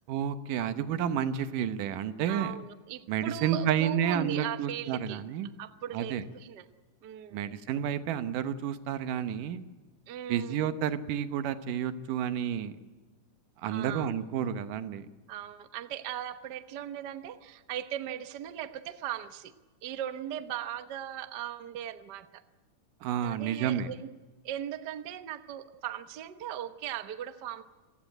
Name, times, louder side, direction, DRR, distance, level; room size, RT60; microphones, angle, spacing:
voice 1, 0.1-2.5 3.1-5.5 5.9-6.2 7.3-9.6 10.3-12.7 13.6-15.0 23.0-23.9, right 9 dB, 90° right, 11 dB, 2.7 m, -30 dB
voice 2, 2.3-5.2 5.6-6.7 7.0-7.6 10.1-10.6 13.7-14.1 15.3-19.5 19.8-22.4 23.2-24.1 24.4-27.6, right 11 dB, 70° right, 10 dB, 1.0 m, -38 dB
27.0 x 16.0 x 9.0 m, 1.3 s
omnidirectional pair, 3.7 m